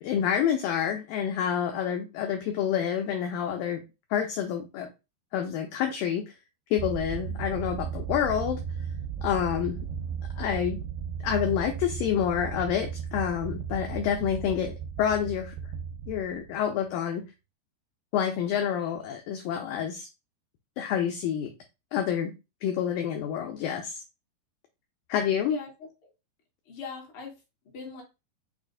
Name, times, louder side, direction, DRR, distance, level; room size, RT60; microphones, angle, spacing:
voice 1, 0.0-3.8 4.1-4.9 5.3-6.2 6.7-8.6 9.2-9.8 10.4-10.8 11.2-15.6 16.1-17.2 18.1-20.1 20.8-21.5 21.9-22.3 22.6-24.0 25.1-25.6, left 9 dB, 80° left, 4 dB, 2.1 m, -28 dB
sound 1, 6.8-16.9, right 7 dB, 85° right, 2.5 m, -35 dB
voice 2, 25.5-26.1 26.6-28.0, left 4 dB, 50° left, -1 dB, 1.6 m, -41 dB
5.9 x 2.4 x 3.6 m, 0.26 s
omnidirectional pair, 4.6 m